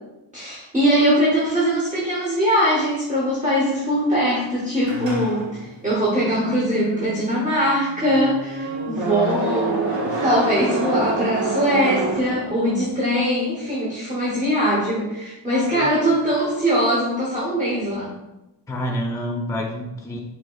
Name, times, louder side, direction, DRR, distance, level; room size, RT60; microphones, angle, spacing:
voice 1, 0.3-18.1, equal, 15° right, -7 dB, 1.0 m, -21 dB
sound 1, 4.8-12.9, right 2 dB, 65° right, 1.0 m, -28 dB
voice 2, 15.7-16.0 18.7-20.2, equal, 5° left, 0 dB, 0.5 m, -28 dB
4.8 x 3.5 x 2.3 m, 0.95 s
wide cardioid pair, 135°, 46 cm